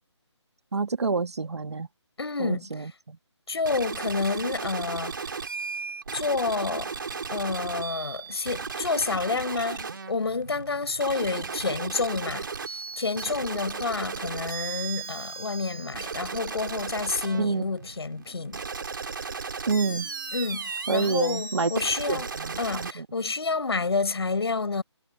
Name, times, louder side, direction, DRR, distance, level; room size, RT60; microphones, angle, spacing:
voice 1, 0.7-1.9 2.4-3.2 17.4-17.6 19.7-20.1 20.9-21.7 22.1-23.1, right 4 dB, 65° right, 2.0 m, -28 dB
voice 2, 2.2-2.9 3.5-5.3 6.1-6.9 7.3-12.5 13.0-18.6 20.3-22.3 22.6-24.8, left 4 dB, 60° left, 7.0 m, -29 dB
sound 1, 3.6-22.9, right 5 dB, 45° right, 3.8 m, -35 dB
hypercardioid pair, 175°, 15 cm